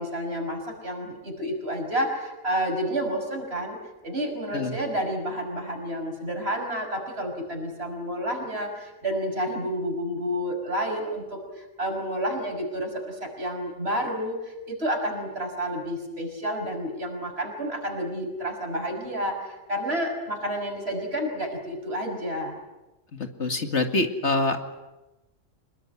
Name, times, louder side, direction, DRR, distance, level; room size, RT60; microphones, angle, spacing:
voice 1, 0.0-3.8 4.0-22.6, equal, 50° right, 3 dB, 6.3 m, -30 dB
voice 2, 23.1-24.6, left 2 dB, 60° left, 6 dB, 2.3 m, -25 dB
26.0 x 21.5 x 9.7 m, 1.0 s
omnidirectional pair, 1.3 m